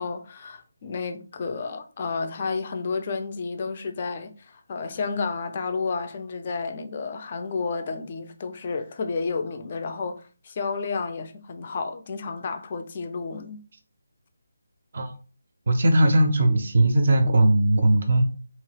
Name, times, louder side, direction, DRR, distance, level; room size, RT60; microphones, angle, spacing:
voice 1, 0.0-13.6, left 4 dB, 30° left, 0.4 m, -31 dB
voice 2, 15.7-18.2, right 1 dB, 45° right, 0.4 m, -19 dB
2.8 x 2.3 x 3.1 m
figure-of-eight pair, 150°, 0 cm